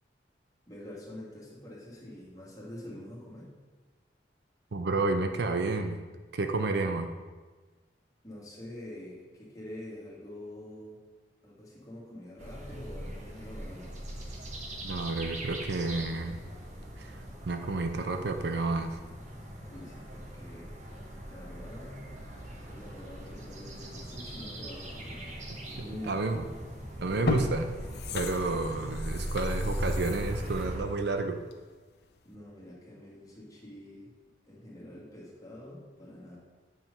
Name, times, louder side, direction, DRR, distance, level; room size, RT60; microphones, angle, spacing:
voice 1, 0.7-3.5 8.2-11.0 11.4-13.9 19.6-20.7 21.3-22.1 22.5-26.3 32.2-34.1 34.4-36.4, left 1 dB, 20° left, -5 dB, 2.1 m, -46 dB
voice 2, 4.7-6.0 6.3-7.1 14.8-16.4 17.0-19.0 26.1-26.4 27.0-27.8 28.1-31.4, right 3 dB, 65° right, 7 dB, 0.6 m, -30 dB
sound 1, 12.4-30.8, right 1 dB, 40° right, 1.2 m, -40 dB
sound 2, 26.5-26.6 27.1-31.8 32.2-32.3, left 3 dB, 65° left, 0.6 m, -36 dB
7.9 x 4.6 x 5.3 m, 1.3 s
head